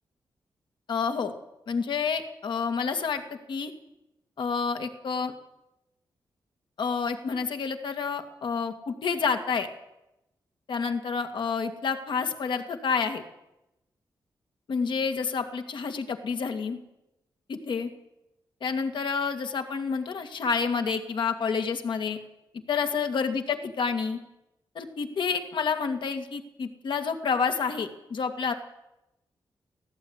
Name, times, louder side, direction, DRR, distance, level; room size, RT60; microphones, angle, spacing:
voice 1, 0.9-1.3 1.7-3.7 4.4-5.3 6.8-9.7 10.7-13.2 14.7-16.8 17.5-17.9 18.6-22.2 22.7-24.2 24.7-28.5, left 5 dB, 70° left, 6 dB, 2.3 m, -29 dB
17.5 x 15.5 x 9.7 m, 0.91 s
cardioid pair, 100°, 8 cm